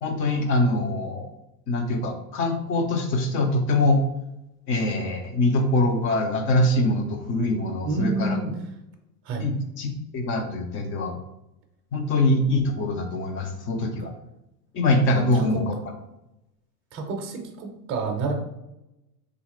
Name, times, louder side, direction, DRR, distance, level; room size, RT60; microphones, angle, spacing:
voice 1, 0.0-1.3 1.7-4.0 4.7-8.4 9.4-9.9 10.1-11.2 11.9-14.1 14.7-15.7, left 2 dB, 25° left, 5 dB, 0.4 m, -23 dB
voice 2, 7.8-8.6 9.2-9.5 14.0-14.1 15.1-15.6 16.9-18.3, right 3 dB, 25° right, 2 dB, 0.6 m, -29 dB
3.4 x 2.4 x 3.0 m, 0.90 s
hypercardioid pair, 110°, 50 cm